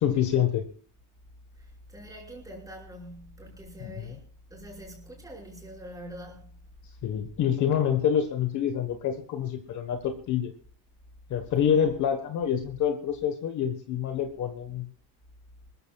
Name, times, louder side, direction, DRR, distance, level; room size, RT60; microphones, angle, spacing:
voice 1, 0.0-0.6 3.8-4.2 7.0-10.5 11.3-14.9, left 9 dB, 45° left, 1.3 m, -27 dB
voice 2, 1.6-4.2 4.5-6.6 11.8-11.9, equal, 10° right, 5.6 m, -44 dB
25.5 x 14.0 x 2.4 m
cardioid pair, 165°, 41 cm